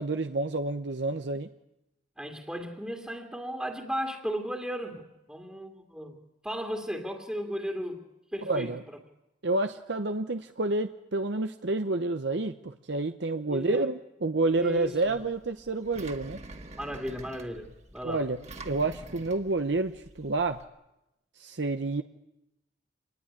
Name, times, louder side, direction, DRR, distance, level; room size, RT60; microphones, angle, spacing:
voice 1, 0.0-1.5 8.5-8.8 9.4-16.4 18.0-18.4 18.6-19.9 20.2-20.6 21.4-22.0, right 2 dB, 65° right, 8 dB, 0.9 m, -29 dB
voice 2, 2.2-6.2 6.4-8.0 8.3-9.0 13.5-13.9 14.6-15.2 16.8-18.3, equal, 5° right, 2 dB, 2.3 m, -35 dB
Engine, 14.5-20.6, right 2 dB, 35° right, 2.0 m, -47 dB
27.0 x 20.0 x 9.9 m, 0.92 s
head